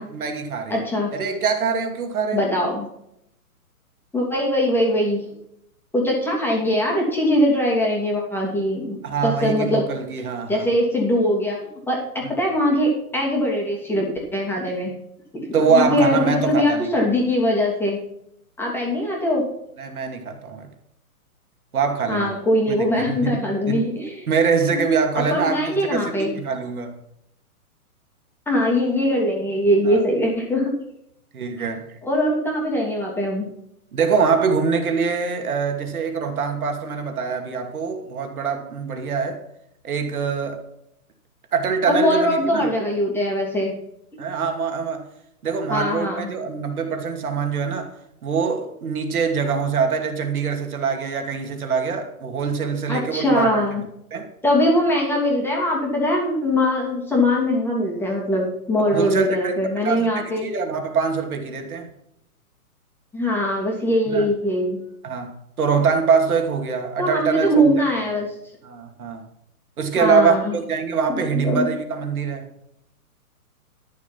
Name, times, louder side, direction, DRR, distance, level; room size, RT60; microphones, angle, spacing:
voice 1, 0.0-0.8 1.1-2.4 9.0-10.7 15.5-16.9 19.8-20.7 21.7-22.3 22.7-23.8 24.3-26.9 29.9-30.0 31.3-32.0 33.9-39.4 39.8-40.6 41.5-42.7 44.2-45.1 45.4-47.9 48.2-53.7 54.1-54.3 58.9-59.5 59.8-61.9 64.1-64.3 65.0-67.7 68.6-69.2 69.8-72.5, right 5 dB, 70° right, 2.7 m, -24 dB
voice 2, 0.7-1.1 2.3-2.9 4.1-5.2 5.9-9.9 10.5-11.6 11.9-12.0 12.4-14.9 15.3-18.0 18.6-19.4 22.1-24.3 24.7-24.8 25.3-26.4 28.5-30.7 31.6-31.7 32.0-33.5 41.9-43.7 45.7-46.3 52.9-53.8 54.4-60.5 63.1-64.8 67.0-68.3 70.0-70.6 71.1-71.7, left 1 dB, 5° left, 2.9 m, -21 dB
12.5 x 7.1 x 5.8 m
hypercardioid pair, 150°, 45 cm